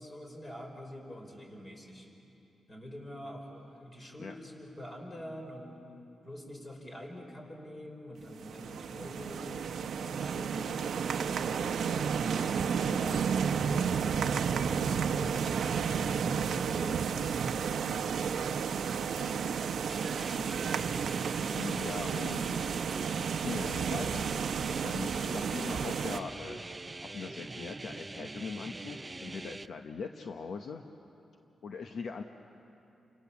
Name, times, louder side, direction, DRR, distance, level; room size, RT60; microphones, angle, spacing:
voice 1, 0.0-2.1 2.7-5.8 6.2-9.5 9.9-11.2 11.7-17.3 17.7-19.5, equal, 30° left, 1 dB, 5.1 m, -46 dB
sound 1, 8.3-26.2, right 6 dB, 75° right, 0.8 m, -32 dB
sound 2, 19.9-29.7, right 2 dB, 20° right, 0.6 m, -43 dB
voice 2, 21.5-22.6 23.3-24.3 24.7-26.6 27.1-30.9 31.6-32.2, left 5 dB, 65° left, 5 dB, 1.0 m, -41 dB
29.5 x 26.0 x 7.1 m, 2.9 s
wide cardioid pair, 130°, 0 cm